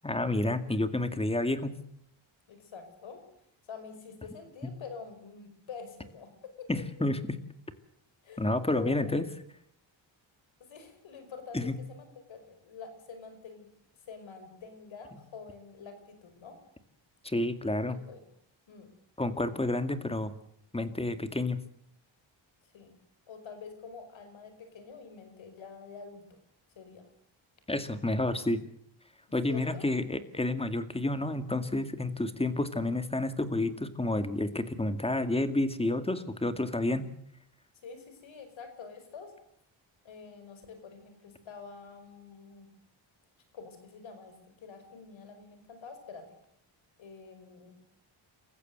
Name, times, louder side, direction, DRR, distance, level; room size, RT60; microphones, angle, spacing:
voice 1, 0.0-1.7 4.6-4.7 6.7-7.4 8.4-9.2 11.5-11.7 17.2-18.0 19.2-20.3 20.7-21.6 27.7-28.6 29.3-37.1, left 2 dB, 10° left, 10 dB, 2.1 m, -30 dB
voice 2, 2.5-3.2 3.7-6.3 6.6-6.7 8.2-9.2 10.6-13.7 14.1-16.6 17.9-18.3 18.7-18.9 22.6-22.9 23.3-26.4 26.8-27.1 29.4-29.9 37.8-39.3 40.0-42.7 43.5-46.4 47.0-47.8, left 5 dB, 75° left, 9 dB, 5.4 m, -46 dB
27.0 x 15.5 x 8.0 m, 0.70 s
cardioid pair, 100°, 46 cm